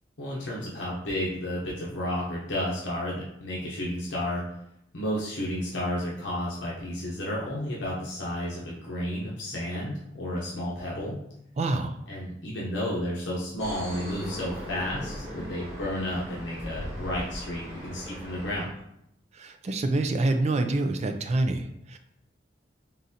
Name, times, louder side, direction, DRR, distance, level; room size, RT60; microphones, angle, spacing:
voice 1, 0.2-4.4 4.9-11.2 12.1-18.7, left 1 dB, 80° left, -5 dB, 0.8 m, -32 dB
voice 2, 11.6-12.0 19.3-22.0, right 2 dB, 40° right, 7 dB, 0.4 m, -26 dB
sound 1, 13.6-18.7, equal, 15° right, 1.5 m, -39 dB
3.9 x 3.8 x 2.8 m, 0.78 s
head